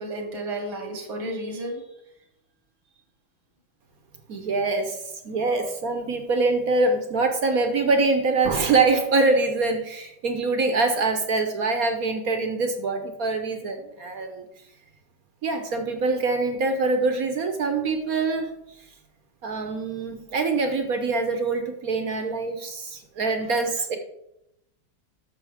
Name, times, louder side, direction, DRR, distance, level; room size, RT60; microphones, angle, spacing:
voice 1, 0.0-1.8 5.5-5.6 23.9-24.0, right 1 dB, 85° right, 3 dB, 2.3 m, -32 dB
voice 2, 4.3-5.0 5.2-14.5 15.4-18.6 19.4-24.0, right 3 dB, 55° right, 6 dB, 1.2 m, -24 dB
12.0 x 6.9 x 3.5 m, 0.80 s
omnidirectional pair, 2.2 m